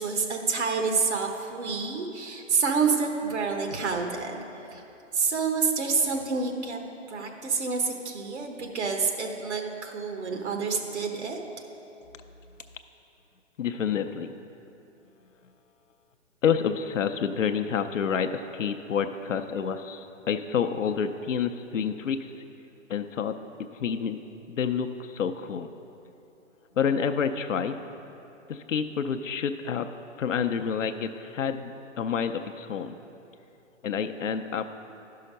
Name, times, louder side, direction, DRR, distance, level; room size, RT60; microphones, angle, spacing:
voice 1, 0.0-4.4 4.7-4.8 5.1-6.8 7.1-11.4, right 5 dB, 60° right, 2 dB, 1.2 m, -28 dB
voice 2, 13.6-14.3 16.4-22.3 22.9-23.4 23.8-24.2 24.5-25.7 26.8-27.8 28.5-29.9 30.2-31.7 32.0-33.0 33.8-34.6, left 7 dB, 75° left, 7 dB, 0.6 m, -28 dB
11.5 x 5.7 x 5.3 m, 2.9 s
figure-of-eight pair, 130°, 38 cm